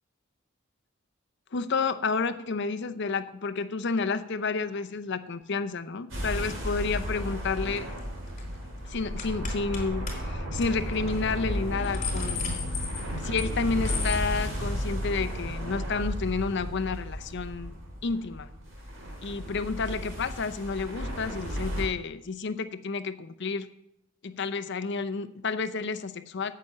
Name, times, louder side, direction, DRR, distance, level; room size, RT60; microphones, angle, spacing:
voice 1, 1.5-7.9 8.9-12.4 13.2-17.8 18.0-18.5 19.2-23.7 24.2-26.5, left 4 dB, 60° left, 10 dB, 0.7 m, -30 dB
sound 1, 6.1-21.8, equal, 70° right, 3.3 m, -33 dB
sound 2, 7.8-8.0 8.3-8.5 9.2-9.8 10.1-10.2 10.5-10.7 11.1-11.2 11.6-13.5 13.8-14.2, left 7 dB, 40° left, 3.9 m, -36 dB
8.5 x 6.7 x 8.5 m, 0.84 s
head